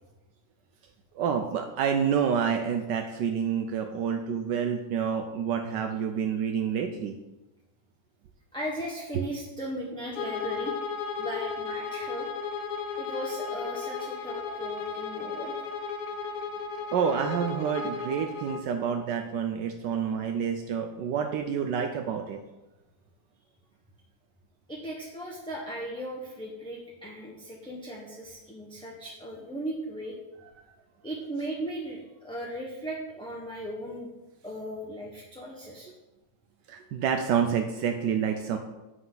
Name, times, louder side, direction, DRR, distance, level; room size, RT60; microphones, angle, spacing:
voice 1, 1.1-7.1 16.9-22.4 36.7-38.6, right 7 dB, 80° right, 5 dB, 1.4 m, -28 dB
voice 2, 8.5-10.7 11.2-12.3 13.0-15.5 24.7-30.1 31.0-34.1 34.4-35.9, right 1 dB, 5° left, -3 dB, 1.2 m, -37 dB
Bowed string instrument, 10.1-18.7, left 5 dB, 65° left, 1.3 m, -34 dB
10.0 x 8.0 x 4.0 m, 1.0 s
omnidirectional pair, 1.9 m